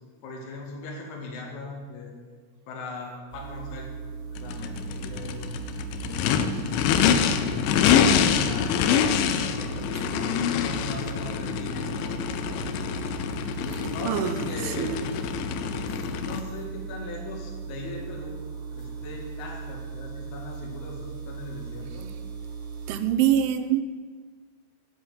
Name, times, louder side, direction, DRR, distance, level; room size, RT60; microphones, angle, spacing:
voice 1, 0.2-2.1 2.7-3.9 4.4-5.5 6.0-6.9 7.3-8.9 9.4-10.2 10.6-12.8 13.5-15.0 16.2-18.4 18.7-22.1, left 2 dB, 50° left, -1 dB, 2.6 m, -39 dB
sound 1, 3.3-23.0, right 5 dB, 50° right, 2.3 m, -38 dB
Race car auto racing / Idling / Accelerating revving vroom, 4.4-16.4, left 8 dB, 85° left, 3.0 m, -25 dB
voice 2, 14.0-15.0 22.9-23.8, right 10 dB, 85° right, 10 dB, 3.2 m, -25 dB
8.8 x 8.1 x 9.1 m, 1.5 s
omnidirectional pair, 5.4 m